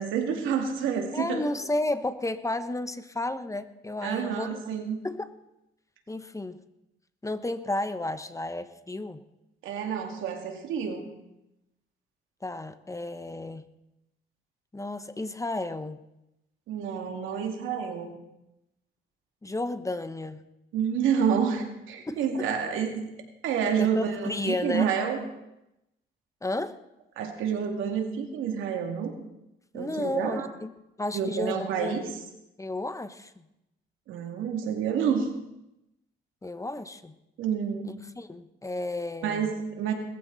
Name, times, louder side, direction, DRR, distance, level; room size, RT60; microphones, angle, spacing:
voice 1, 0.0-1.4 4.0-5.0 9.6-11.1 16.7-18.1 20.7-23.1 23.4-25.2 27.2-29.2 29.7-30.5 31.1-32.1 34.1-35.3 37.4-38.0 39.2-39.9, right 7 dB, 90° right, 3 dB, 2.5 m, -28 dB
voice 2, 1.1-4.6 5.0-5.3 6.1-6.6 7.2-9.2 12.4-13.6 14.7-16.0 19.4-20.4 22.1-22.2 23.8-24.9 26.4-26.7 29.7-30.7 31.0-32.0 32.6-33.4 36.4-37.1 37.9-39.5, left 2 dB, 15° left, 11 dB, 1.0 m, -32 dB
20.0 x 14.5 x 4.1 m, 0.89 s
cardioid pair, 90°, 20 cm